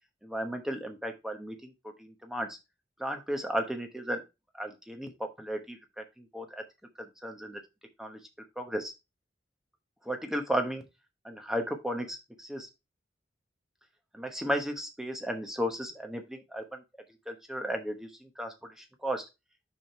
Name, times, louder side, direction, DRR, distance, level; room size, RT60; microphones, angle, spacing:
voice 1, 0.2-1.7 2.0-2.5 3.0-4.2 4.6-5.1 5.4-6.6 7.2-7.6 8.0-8.2 8.6-8.9 10.1-10.8 11.2-12.7 14.1-16.8 17.3-18.1 18.4-18.5 19.0-19.3, equal, 5° right, 4 dB, 1.0 m, -34 dB
5.8 x 4.9 x 4.5 m, 0.25 s
head